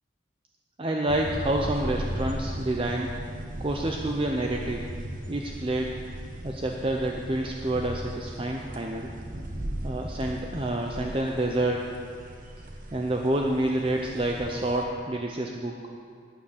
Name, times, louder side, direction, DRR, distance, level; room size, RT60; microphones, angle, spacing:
voice 1, 0.8-3.1 3.6-4.8 5.3-6.0 6.4-9.1 9.8-11.9 12.9-15.8, right 1 dB, 30° right, 1 dB, 0.6 m, -28 dB
sound 1, 1.1-14.8, right 1 dB, 45° right, 1.1 m, -37 dB
12.5 x 8.7 x 6.6 m, 2.2 s
head